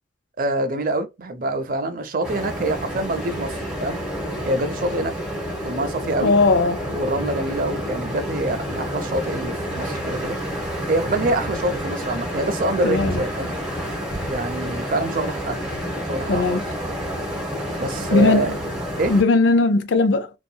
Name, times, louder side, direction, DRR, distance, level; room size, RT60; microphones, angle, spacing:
voice 1, 0.4-3.5 3.8-4.0 4.5-5.1 5.6-6.3 6.9-10.4 10.9-13.5 14.3-15.6 16.1-16.6 17.8-18.5 19.0-19.1, right 1 dB, 50° right, 0.5 m, -25 dB
sound 1, 2.2-19.2, equal, 5° right, 0.9 m, -29 dB
voice 2, 6.2-6.9 12.8-13.2 16.3-16.6 18.1-18.6 19.1-20.3, left 3 dB, 75° left, 0.4 m, -18 dB
2.8 x 2.3 x 2.2 m
head